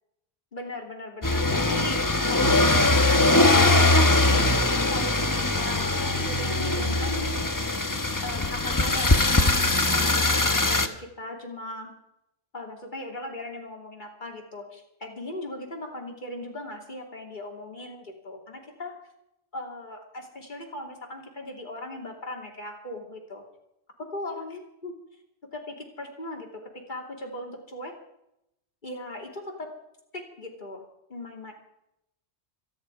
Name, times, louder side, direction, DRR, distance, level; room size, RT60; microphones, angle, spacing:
voice 1, 0.5-7.4 8.2-9.6 9.9-11.9 12.5-19.0 19.5-23.4 24.1-25.0 25.4-27.9 28.8-29.7 30.1-31.5, left 1 dB, 45° left, 1 dB, 3.2 m, -38 dB
sound 1, 1.2-10.9, left 2 dB, 20° left, 1.0 m, -21 dB
26.0 x 10.5 x 4.8 m, 0.83 s
omnidirectional pair, 1.1 m